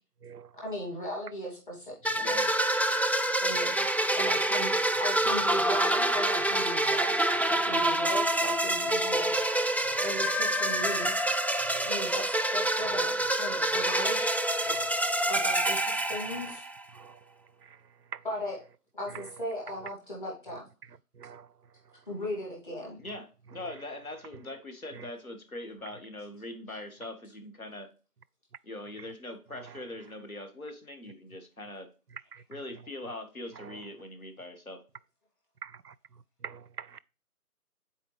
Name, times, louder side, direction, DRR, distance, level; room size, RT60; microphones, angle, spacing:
voice 1, 0.6-2.3 3.4-3.8 4.1-7.2 7.5-9.3 10.0-11.2 11.8-14.3 15.3-16.6 18.2-18.6 18.9-20.6 22.1-23.0 26.7-26.8, left 1 dB, 35° left, 2.8 m, -37 dB
sound 1, 2.0-16.8, right 1 dB, 5° left, 0.3 m, -27 dB
voice 2, 2.2-2.5 23.0-27.9 28.6-31.9 32.5-34.8, left 1 dB, 65° left, 1.7 m, -42 dB
voice 3, 35.6-35.9 36.4-37.0, right 7 dB, 85° right, 0.6 m, -44 dB
9.6 x 4.4 x 3.3 m
figure-of-eight pair, 160°, 46 cm